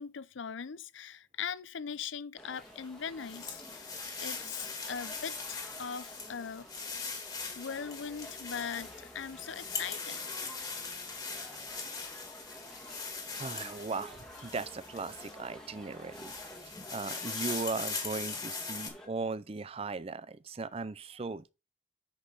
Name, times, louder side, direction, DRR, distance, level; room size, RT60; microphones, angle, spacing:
voice 1, 0.0-6.7 7.5-10.2, left 7 dB, 80° left, 0.6 m, -40 dB
sound 1, 2.4-19.1, equal, 5° left, 1.6 m, -51 dB
sound 2, 2.6-15.5 15.9-18.9, left 4 dB, 20° left, 1.9 m, -41 dB
voice 2, 13.4-16.3 16.9-21.5, right 4 dB, 30° right, 0.4 m, -38 dB
9.7 x 5.4 x 3.9 m
head